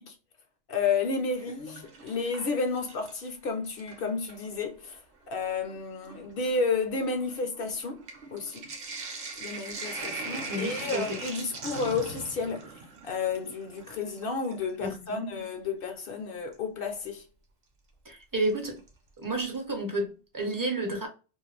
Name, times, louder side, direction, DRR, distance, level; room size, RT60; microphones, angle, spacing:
voice 1, 0.7-8.0 8.3-8.7 9.4-17.2, left 4 dB, 60° left, 0.7 m, -31 dB
Sink (filling or washing), 1.3-3.3 3.6-4.5 5.3-5.4 5.6-14.8 16.5-16.6 18.4-18.9 19.2-19.3 19.5-19.6, right 3 dB, 60° right, 0.9 m, -40 dB
voice 2, 10.5-11.2 14.8-15.3 18.1-18.8 19.2-21.1, right 1 dB, 25° right, 0.5 m, -31 dB
2.4 x 2.1 x 3.0 m
omnidirectional pair, 1.2 m